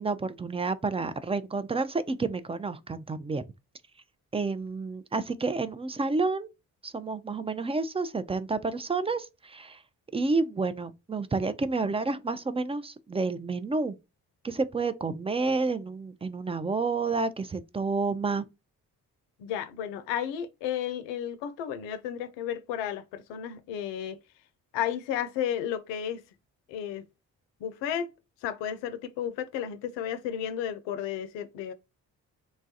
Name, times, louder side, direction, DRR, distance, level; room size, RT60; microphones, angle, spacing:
voice 1, 0.0-3.4 4.3-6.5 6.8-9.8 10.1-14.0 14.4-18.5, right 3 dB, 15° right, 0.4 m, -30 dB
voice 2, 19.4-24.2 24.7-26.2 26.7-27.1 27.6-28.1 28.4-31.7, left 9 dB, 80° left, 0.6 m, -33 dB
3.1 x 2.2 x 2.7 m
hypercardioid pair, 40°, 43 cm